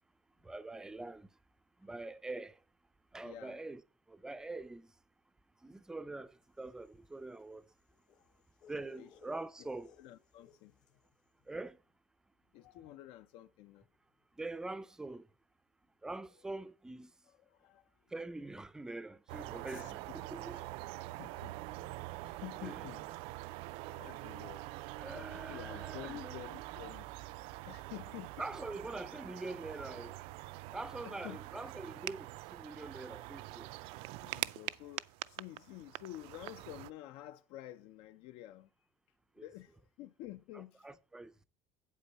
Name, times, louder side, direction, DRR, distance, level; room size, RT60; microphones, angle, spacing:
voice 1, 0.4-1.3 1.8-2.6 3.1-3.8 4.1-4.9 5.6-7.6 8.7-9.9 11.5-11.8 14.4-15.3 16.0-17.1 18.1-20.0 20.3-20.6 22.6-22.8 25.0-26.3 28.4-30.2 30.7-33.7 39.4-39.5 40.8-41.3, right 2 dB, 5° right, 0.4 m, -44 dB
voice 2, 3.2-3.6 8.6-8.7 9.0-9.1 10.0-11.0 12.5-13.9 17.3-17.9 19.6-19.9 21.1-23.2 23.9-24.7 25.1-27.1 27.7-28.5 31.0-31.4 34.2-38.7 39.4-41.0, left 15 dB, 75° left, 0.6 m, -50 dB
sound 1, 6.5-11.1, left 6 dB, 45° left, 1.1 m, -63 dB
sound 2, 19.3-36.9, right 19 dB, 70° right, 0.4 m, -45 dB
8.3 x 8.3 x 4.1 m
cardioid pair, 165°, 10 cm